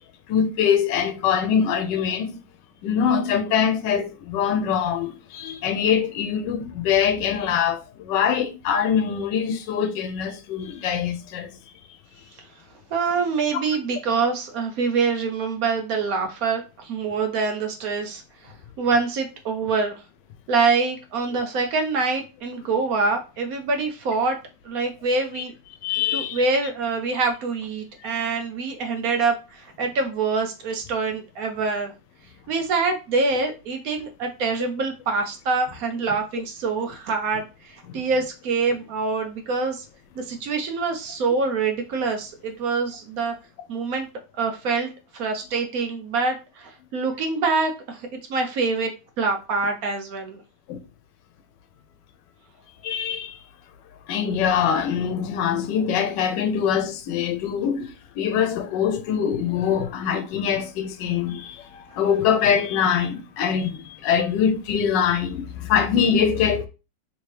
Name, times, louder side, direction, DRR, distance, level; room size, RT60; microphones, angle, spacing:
voice 1, 0.3-2.4 2.8-11.5 25.4-25.5 25.8-26.5 37.9-38.0 50.7-50.8 52.8-53.4 54.1-66.7, left 8 dB, 90° left, 1.2 m, -23 dB
voice 2, 12.9-20.0 20.5-24.4 24.6-25.5 26.1-31.9 32.5-39.9 40.2-43.3 43.7-44.1 44.4-50.4, right 4 dB, 65° right, 1.0 m, -25 dB
3.4 x 2.8 x 3.2 m
omnidirectional pair, 1.8 m